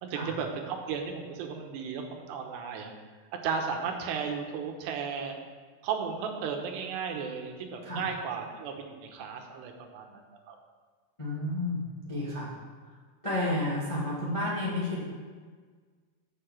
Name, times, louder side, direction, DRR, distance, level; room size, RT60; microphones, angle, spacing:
voice 1, 0.0-2.9 3.4-5.4 5.8-10.6, right 6 dB, 85° right, 3 dB, 3.1 m, -35 dB
voice 2, 11.2-12.5 13.2-15.0, left 1 dB, 50° left, -7 dB, 0.3 m, -31 dB
7.6 x 6.8 x 7.5 m, 1.5 s
omnidirectional pair, 4.8 m